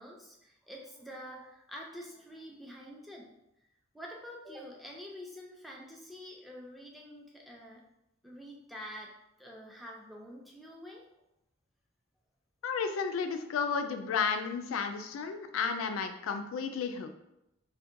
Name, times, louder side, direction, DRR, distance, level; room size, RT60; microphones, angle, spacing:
voice 1, 0.0-3.3 3.9-7.8 8.2-11.1, equal, ahead, -2 dB, 0.3 m, -47 dB
voice 2, 12.6-17.1, left 5 dB, 90° left, 7 dB, 0.3 m, -32 dB
2.6 x 2.1 x 2.5 m, 0.85 s
head